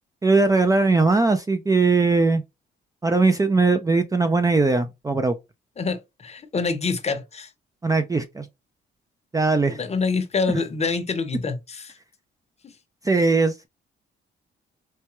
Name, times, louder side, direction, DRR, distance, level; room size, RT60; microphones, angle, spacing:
voice 1, 0.2-2.4 3.0-5.3 7.8-8.5 9.3-9.8 10.5-10.6 13.0-13.7, right 3 dB, 15° right, 0.4 m, -20 dB
voice 2, 5.8-7.5 9.6-11.9, left 4 dB, 35° left, 0.7 m, -26 dB
4.5 x 2.2 x 3.0 m
cardioid pair, 90°, 20 cm